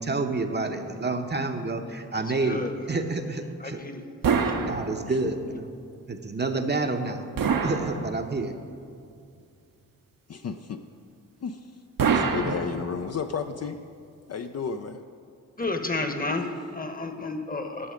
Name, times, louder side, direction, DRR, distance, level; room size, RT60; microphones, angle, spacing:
voice 1, 0.0-2.6 2.9-3.8 4.7-5.7 6.1-7.3 7.6-8.5, right 3 dB, 30° right, 5 dB, 0.8 m, -29 dB
voice 2, 2.1-3.0 3.4-4.0 4.4-4.6 15.6-17.9, left 2 dB, 25° left, 6 dB, 1.1 m, -32 dB
sound 1, 4.2-5.4 7.4-8.6 12.0-13.3, right 5 dB, 65° right, 0.9 m, -26 dB
voice 3, 10.3-10.8 11.4-11.7 12.1-13.8 14.3-15.0, left 6 dB, 45° left, 7 dB, 0.5 m, -32 dB
11.5 x 6.4 x 5.1 m, 2.3 s
supercardioid pair, 45°, 36 cm